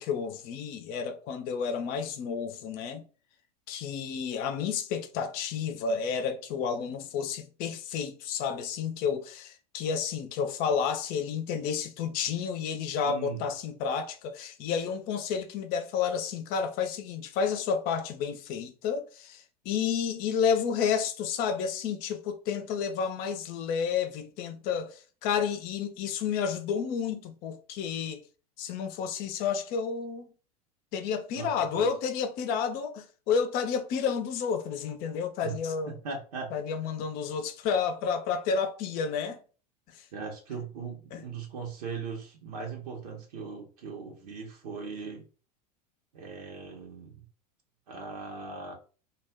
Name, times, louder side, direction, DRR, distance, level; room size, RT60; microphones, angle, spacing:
voice 1, 0.0-3.0 3.7-28.2 28.6-30.3 30.9-35.9 36.5-39.4 40.0-40.1 41.1-41.2, left 6 dB, 45° left, 0.6 m, -31 dB
voice 2, 13.0-13.4 31.4-31.9 35.4-35.5 36.0-36.5 40.1-45.2 46.1-47.1 47.9-48.7, right 5 dB, 70° right, 0.9 m, -39 dB
2.4 x 2.1 x 3.4 m
hypercardioid pair, 90°, 21 cm